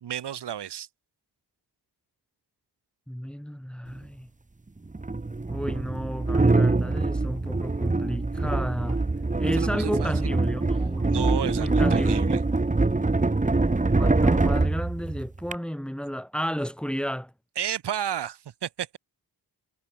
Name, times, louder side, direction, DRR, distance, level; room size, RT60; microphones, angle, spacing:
voice 1, 0.0-0.9 9.4-10.1 11.1-12.4 17.6-19.0, right 10 dB, 75° right, 0.9 m, -32 dB
voice 2, 3.1-4.3 5.5-9.0 9.4-11.1 11.6-12.2 14.0-17.3, equal, ahead, 3.5 m, -32 dB
sound 1, 3.9-4.0 4.9-15.5, right 3 dB, 20° right, 1.1 m, -24 dB
wide cardioid pair, 90°, 41 cm